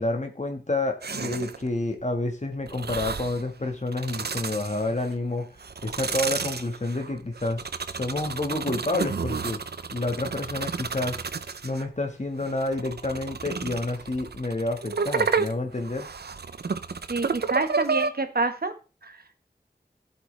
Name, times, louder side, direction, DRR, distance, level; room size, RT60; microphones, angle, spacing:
voice 1, 0.0-5.5 5.8-7.6 7.9-9.6 9.9-11.2 11.6-16.1, left 2 dB, 45° left, 4 dB, 1.6 m, -29 dB
sound 1, 1.0-1.7 2.7-3.4 3.9-5.1 5.6-11.9 12.4-18.1, right 5 dB, 90° right, 0.6 m, -31 dB
voice 2, 17.1-18.7 19.0-19.2, right 3 dB, 70° right, 8 dB, 1.5 m, -27 dB
14.0 x 7.9 x 3.3 m, 0.33 s
wide cardioid pair, 45°, 16 cm